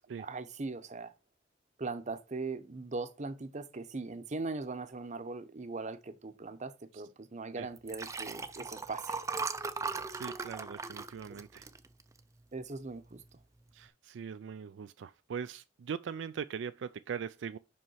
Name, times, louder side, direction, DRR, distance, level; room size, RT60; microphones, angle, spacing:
voice 1, 0.2-1.1 1.8-9.2 11.3-11.4 12.5-13.2, right 3 dB, 40° right, 0.8 m, -40 dB
Liquid, 7.8-12.4 12.9-13.2 13.4-13.5, right 4 dB, 15° right, 0.5 m, -38 dB
voice 2, 10.1-11.7 13.7-17.6, right 7 dB, 80° right, 0.4 m, -41 dB
5.5 x 5.3 x 5.6 m
head